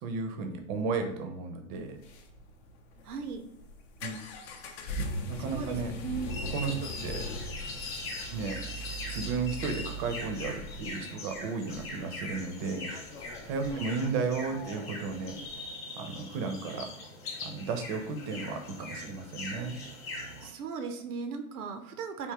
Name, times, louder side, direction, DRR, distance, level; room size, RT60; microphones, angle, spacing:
voice 1, 0.0-1.9 4.0-4.2 5.3-5.9 6.5-7.2 8.3-8.6 9.1-12.9 13.4-15.4 16.0-16.9 17.4-19.8, right 4 dB, 35° right, 5 dB, 0.5 m, -34 dB
sound 1, 1.8-15.6, equal, 50° left, 0.6 m, -41 dB
voice 2, 3.0-3.4 5.4-6.3 13.6-14.2 20.4-22.3, right 5 dB, 85° right, 7 dB, 0.6 m, -37 dB
sound 2, 6.2-20.5, left 2 dB, 30° left, 0.9 m, -41 dB
3.5 x 2.7 x 2.8 m, 0.79 s
hypercardioid pair, 130°, 43 cm